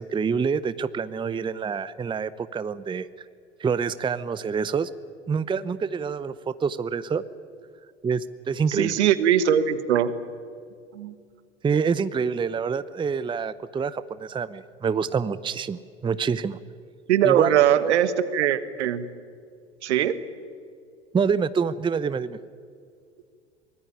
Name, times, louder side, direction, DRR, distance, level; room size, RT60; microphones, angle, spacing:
voice 1, 0.0-3.1 3.6-4.9 5.3-7.2 8.0-9.0 11.6-16.6 17.2-17.7 21.1-22.4, right 6 dB, 15° right, 16 dB, 0.7 m, -26 dB
voice 2, 8.7-10.1 10.9-11.1 17.1-19.0 19.8-20.2, right 10 dB, 70° right, 13 dB, 1.5 m, -21 dB
24.0 x 20.0 x 9.9 m, 2.2 s
figure-of-eight pair, 75°, 35 cm